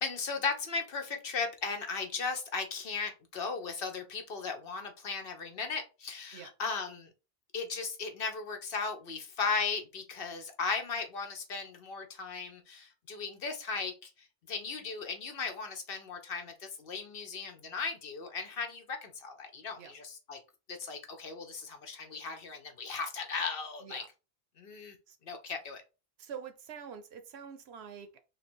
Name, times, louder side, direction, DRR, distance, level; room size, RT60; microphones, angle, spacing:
voice 1, 0.0-7.1 7.5-14.1 14.5-20.4 20.7-24.0 24.6-25.0 25.2-25.8, left 4 dB, 65° left, 1.0 m, -36 dB
voice 2, 26.2-28.2, right 7 dB, 80° right, 1.0 m, -46 dB
3.3 x 2.8 x 4.3 m
omnidirectional pair, 1.1 m